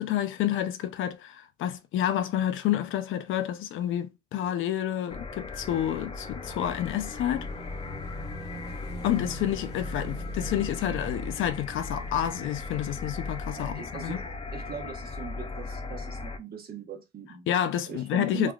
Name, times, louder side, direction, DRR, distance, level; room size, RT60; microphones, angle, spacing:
voice 1, 0.0-7.5 9.0-14.2 17.5-18.5, left 11 dB, 80° left, 0.5 m, -29 dB
sound 1, 5.1-16.4, left 3 dB, 30° left, 0.4 m, -37 dB
Motorcycle / Engine, 5.9-14.4, right 2 dB, 55° left, 1.0 m, -45 dB
voice 2, 13.5-17.5 17.9-18.5, right 6 dB, 50° right, 1.0 m, -40 dB
3.4 x 2.2 x 2.3 m
cardioid pair, 90°, 20 cm